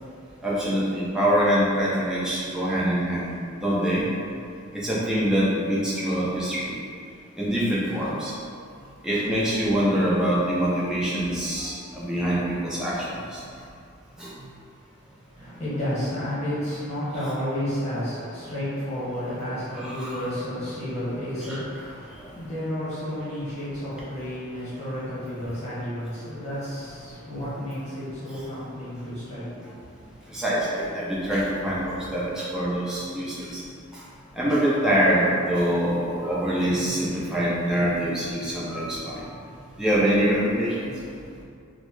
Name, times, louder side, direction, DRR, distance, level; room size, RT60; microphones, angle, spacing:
voice 1, 0.4-3.3 3.6-4.0 4.7-6.8 7.4-8.4 9.0-13.4 14.2-14.4 19.7-20.3 21.4-21.6 22.2-22.3 27.3-27.5 28.3-28.4 30.3-33.6 33.9-34.0 34.3-39.3 39.8-40.9, equal, 5° right, -8 dB, 0.5 m, -25 dB
voice 2, 15.3-29.6, equal, 30° left, -10 dB, 1.1 m, -31 dB
2.8 x 2.1 x 3.1 m, 2.4 s
head